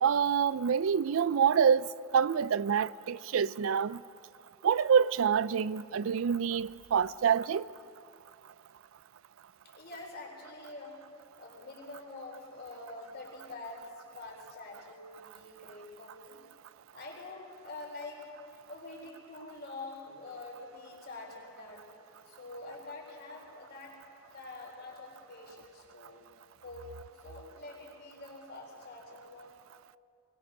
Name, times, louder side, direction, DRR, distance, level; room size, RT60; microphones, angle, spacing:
voice 1, 0.0-4.0 4.6-7.7, right 7 dB, 80° right, 0.4 m, -27 dB
voice 2, 9.6-11.0 11.3-16.4 16.9-18.2 18.7-21.9 22.3-24.0 24.3-26.2 26.6-26.9 27.2-29.6, left 2 dB, 50° left, 4.3 m, -46 dB
21.0 x 19.5 x 6.4 m
head